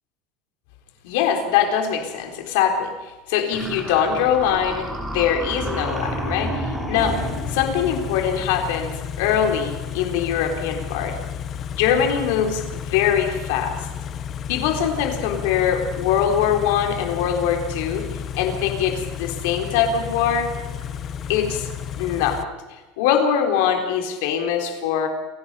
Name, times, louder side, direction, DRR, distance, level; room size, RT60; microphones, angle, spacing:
voice 1, 1.0-11.2 11.7-13.9 14.5-18.1 18.3-20.5 21.3-21.7 22.0-22.4 23.0-25.1, left 8 dB, 60° left, 4 dB, 3.7 m, -22 dB
sound 1, 3.5-7.9, right 1 dB, 5° right, 3.0 m, -30 dB
Car / Idling, 7.0-22.4, left 8 dB, 25° left, 0.7 m, -32 dB
28.5 x 17.5 x 5.6 m, 1.2 s
supercardioid pair, 180°, 0 cm